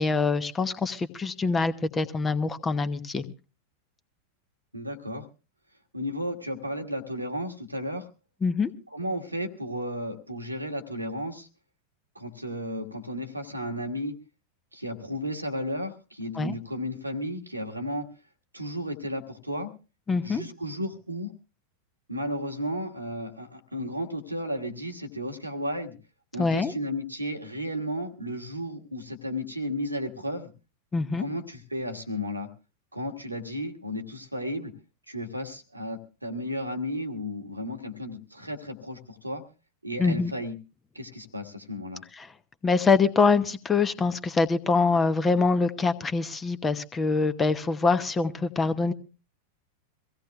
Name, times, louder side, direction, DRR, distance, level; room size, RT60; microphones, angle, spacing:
voice 1, 0.0-3.3 8.4-8.7 16.3-16.5 20.1-20.4 26.4-26.7 30.9-31.2 40.0-40.3 42.2-42.3 42.6-48.9, left 4 dB, 15° left, 10 dB, 1.0 m, -24 dB
voice 2, 4.7-5.3 5.9-8.1 8.9-11.5 12.1-14.1 14.7-18.1 18.5-19.7 20.2-21.3 22.1-26.0 26.3-30.5 31.2-32.5 32.9-34.7 35.1-39.4 39.8-40.5 40.9-42.0, equal, 85° right, 4 dB, 1.5 m, -33 dB
24.5 x 16.0 x 2.3 m, 0.32 s
figure-of-eight pair, 90°, 0 cm